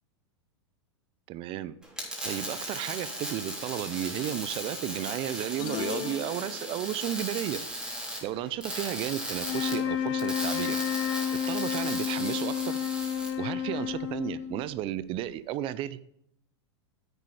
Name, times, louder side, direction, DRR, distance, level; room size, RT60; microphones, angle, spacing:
voice 1, 1.3-1.7 2.2-7.6 8.2-10.8 11.5-12.8 13.4-16.0, right 12 dB, 40° right, 17 dB, 0.6 m, -33 dB
sound 1, 1.8-13.3, equal, 5° right, 3.4 m, -37 dB
sound 2, 5.6-7.1, left 13 dB, 30° left, 0.4 m, -38 dB
sound 3, 9.4-14.8, left 9 dB, 80° left, 1.7 m, -31 dB
10.0 x 8.1 x 4.9 m, 0.75 s
hypercardioid pair, 130°, 15 cm